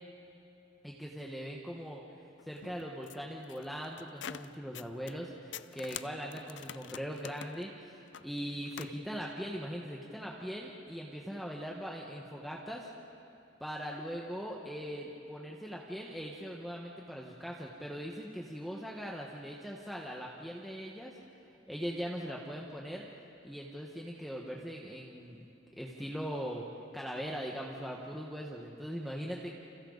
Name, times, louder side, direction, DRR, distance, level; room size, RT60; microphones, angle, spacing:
voice 1, 0.8-2.0 2.4-12.9 13.6-21.2 21.7-23.1 23.4-25.4 25.8-26.6 26.9-29.5, equal, ahead, -2 dB, 1.4 m, -40 dB
sound 1, 2.4-5.2 5.5-9.0, left 9 dB, 65° left, 0.5 m, -47 dB
29.5 x 27.5 x 4.1 m, 2.9 s
head